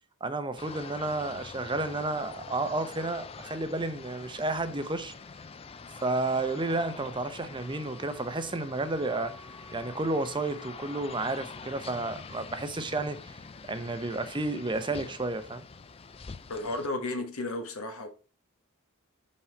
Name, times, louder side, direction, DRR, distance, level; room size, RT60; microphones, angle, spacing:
voice 1, 0.2-5.1 6.0-9.3 9.7-13.2 13.6-15.6, right 2 dB, 20° right, 0.7 m, -31 dB
sound 1, 0.6-16.9, left 5 dB, 25° left, 0.4 m, -45 dB
Wind instrument woodwind instrument, 7.5-11.9, right 1 dB, 80° right, 1.2 m, -54 dB
voice 2, 16.5-18.1, left 2 dB, 85° left, 1.4 m, -33 dB
5.8 x 5.4 x 4.3 m
head